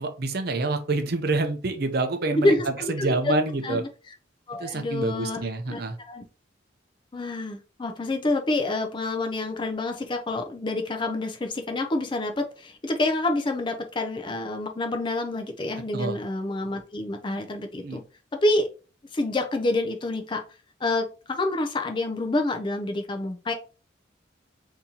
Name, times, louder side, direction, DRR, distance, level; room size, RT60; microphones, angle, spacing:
voice 1, 0.0-2.5 2.9-3.8 4.6-6.0 15.9-16.2 17.8-18.0, right 2 dB, 50° right, 6 dB, 0.5 m, -27 dB
voice 2, 2.3-3.3 3.6-3.9 4.5-5.8 6.1-6.2 7.1-18.0 18.3-18.7 19.1-20.4 20.8-23.5, left 2 dB, 25° left, 4 dB, 0.4 m, -27 dB
3.8 x 2.8 x 2.8 m, 0.34 s
head